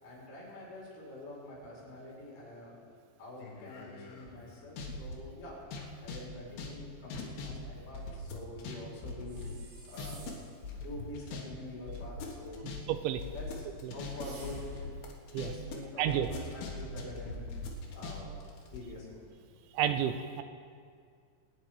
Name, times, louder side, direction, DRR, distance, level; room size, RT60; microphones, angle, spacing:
voice 1, 0.0-2.8 3.2-5.6 6.0-9.5 9.9-10.3 10.8-12.7 13.3-14.7 15.4-17.4 17.9-18.3 18.7-19.3, left 1 dB, 90° left, -5 dB, 6.9 m, -46 dB
sound 1, 3.4-5.1 5.6-8.8 9.0-10.3 10.6-11.4 11.7-15.8 16.1-18.8, left 4 dB, 65° left, 3.4 m, -41 dB
sound 2, 9.3-10.6 14.1-15.0, right 3 dB, 55° right, 3.4 m, -53 dB
voice 2, 12.9-13.2 13.8-13.9 15.3-15.5 16.0-16.3 19.8-20.4, right 10 dB, 80° right, 9 dB, 2.8 m, -30 dB
25.0 x 9.3 x 4.8 m, 2.1 s
omnidirectional pair, 5.4 m